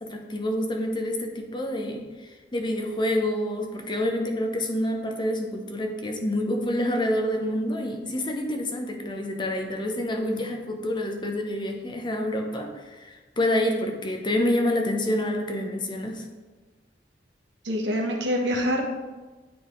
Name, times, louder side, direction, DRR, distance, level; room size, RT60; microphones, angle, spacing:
voice 1, 0.0-16.2, left 1 dB, 25° left, 3 dB, 0.7 m, -27 dB
voice 2, 17.6-18.8, equal, 80° right, 2 dB, 1.0 m, -25 dB
9.5 x 3.6 x 3.1 m, 1.3 s
head